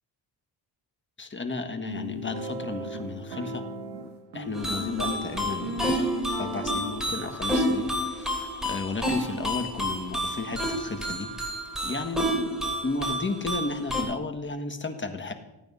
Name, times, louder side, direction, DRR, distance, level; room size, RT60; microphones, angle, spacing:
voice 1, 1.2-3.6 4.3-6.0 6.4-11.3 11.8-15.3, left 3 dB, 30° left, 7 dB, 1.5 m, -33 dB
sound 1, 1.8-6.9, right 1 dB, 80° right, 1.7 m, -36 dB
sound 2, 4.5-14.0, equal, ahead, 3.3 m, -30 dB
15.0 x 8.9 x 5.5 m, 1.0 s
cardioid pair, 90°, 41 cm